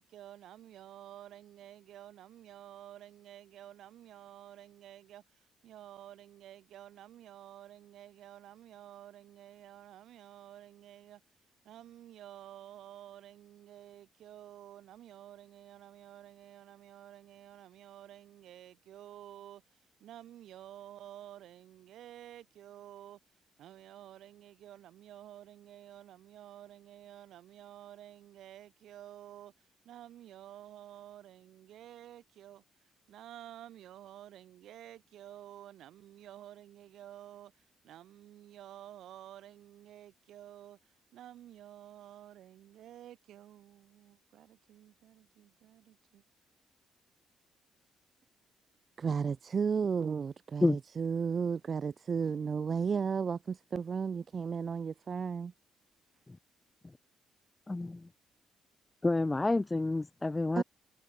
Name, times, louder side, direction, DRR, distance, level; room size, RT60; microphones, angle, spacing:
voice 1, 0.0-11.2 11.7-23.2 23.6-32.6 33.1-46.2, right 12 dB, 75° right, 3.3 m, -51 dB
voice 2, 49.0-55.5 60.5-60.6, right 6 dB, 45° right, 0.8 m, -33 dB
voice 3, 57.7-58.1 59.0-60.6, left 2 dB, 15° left, 0.5 m, -29 dB
cardioid pair, 90°, 0 cm